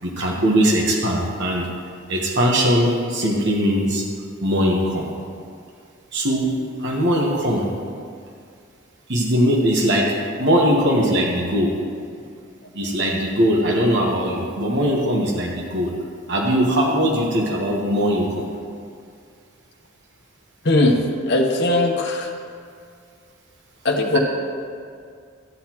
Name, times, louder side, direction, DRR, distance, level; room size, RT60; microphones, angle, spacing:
voice 1, 0.0-1.7 2.1-4.0 4.4-5.1 6.1-6.5 6.8-7.7 9.1-11.8 12.7-15.9 16.3-18.5, equal, 60° right, -1 dB, 1.1 m, -20 dB
voice 2, 20.6-22.3 23.8-24.2, left 2 dB, 55° left, 1 dB, 0.9 m, -19 dB
13.0 x 7.9 x 3.0 m, 2.3 s
head